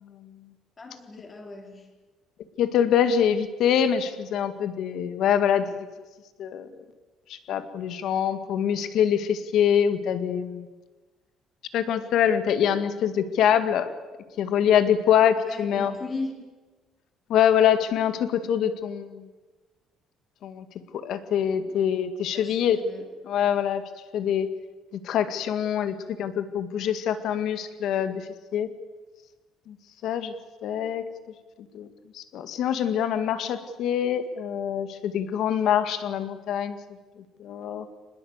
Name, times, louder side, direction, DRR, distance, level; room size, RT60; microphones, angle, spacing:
voice 1, 0.8-1.9 15.4-16.4 21.6-21.8 22.2-23.1, left 3 dB, 20° left, 4 dB, 3.7 m, -37 dB
voice 2, 2.6-5.9 6.4-6.7 7.3-10.7 11.7-13.9 14.4-15.9 17.3-19.3 20.4-20.7 20.9-22.8 23.3-23.8 24.1-24.5 25.0-28.7 29.7-29.8 30.0-30.3 30.6-31.0 31.7-31.9 32.1-36.8 37.4-37.9, left 9 dB, 60° left, 10 dB, 1.9 m, -24 dB
24.5 x 20.5 x 8.1 m, 1.3 s
cardioid pair, 170°, 0 cm